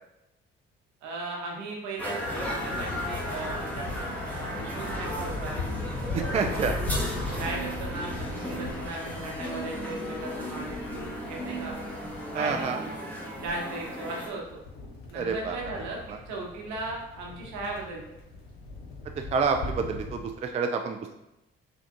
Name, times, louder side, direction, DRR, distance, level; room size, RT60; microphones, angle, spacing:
voice 1, 1.0-5.7 6.9-11.7 12.3-12.9 13.4-14.6 15.1-16.0 16.3-18.2, right 2 dB, 65° right, -1 dB, 1.0 m, -37 dB
sound 1, 2.0-14.3, equal, 5° left, 1.1 m, -35 dB
sound 2, 2.2-12.4 14.1-20.3, left 3 dB, 80° left, 0.7 m, -38 dB
voice 2, 6.1-6.8 12.3-12.8 15.1-15.6 16.1-16.2 19.3-21.0, right 5 dB, 25° right, 5 dB, 0.3 m, -28 dB
3.6 x 3.3 x 2.5 m, 0.91 s
figure-of-eight pair, 45°, 30 cm